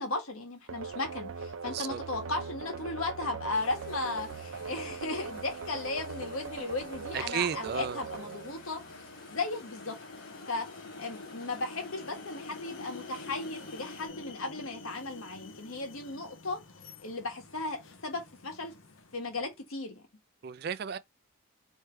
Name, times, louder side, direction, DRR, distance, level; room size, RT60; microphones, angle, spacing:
voice 1, 0.0-8.8 9.3-10.0 10.5-10.7 11.0-16.6 17.0-18.7 19.1-20.0, left 3 dB, 90° left, 1.5 m, -36 dB
sound 1, 0.7-9.4, right 5 dB, 85° right, 0.6 m, -41 dB
voice 2, 1.6-2.0 7.1-8.0 20.4-21.0, right 8 dB, 50° right, 0.3 m, -33 dB
sound 2, 2.1-19.6, left 3 dB, 70° left, 0.8 m, -49 dB
sound 3, 3.5-14.1, left 3 dB, 45° left, 1.5 m, -53 dB
3.2 x 3.2 x 4.5 m
head